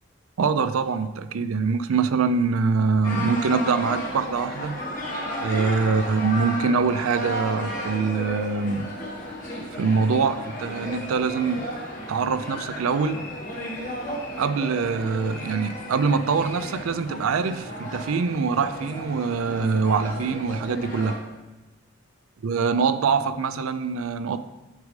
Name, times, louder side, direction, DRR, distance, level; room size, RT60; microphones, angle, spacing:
voice 1, 0.4-4.8 5.4-8.9 9.7-11.6 12.1-13.2 14.4-21.1 22.4-24.4, right 5 dB, 85° right, 12 dB, 0.4 m, -24 dB
sound 1, 3.0-21.2, equal, 40° left, 1.4 m, -34 dB
8.1 x 5.1 x 3.2 m, 1.1 s
head